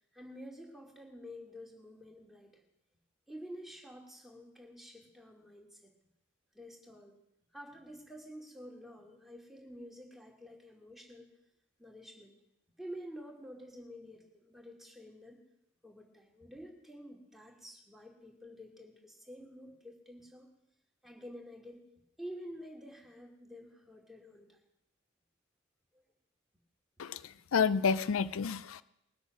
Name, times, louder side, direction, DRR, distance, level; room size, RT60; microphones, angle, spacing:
voice 1, 0.1-2.6 3.3-5.9 6.5-7.2 7.5-11.3 11.8-12.3 12.8-15.4 15.8-20.5 21.0-21.8 22.2-24.6 25.9-26.0, equal, ahead, -1 dB, 2.7 m, -49 dB
voice 2, 27.0-28.8, left 6 dB, 85° left, 16 dB, 0.5 m, -30 dB
21.0 x 8.2 x 6.1 m, 0.83 s
head